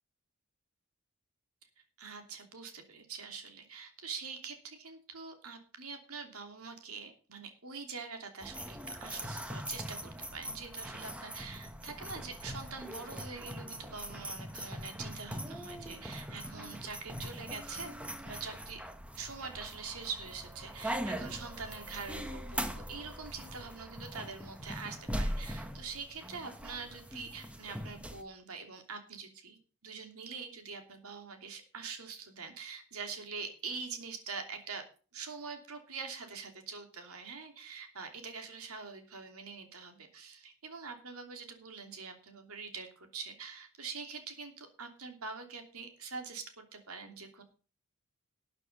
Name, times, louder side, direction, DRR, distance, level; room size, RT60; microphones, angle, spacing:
voice 1, 2.0-17.9 18.2-18.8 19.2-34.8 35.1-47.4, right 5 dB, 85° right, 5 dB, 2.9 m, -44 dB
sound 1, 8.4-28.2, equal, 5° right, 1.2 m, -41 dB
13.0 x 9.0 x 5.4 m, 0.39 s
head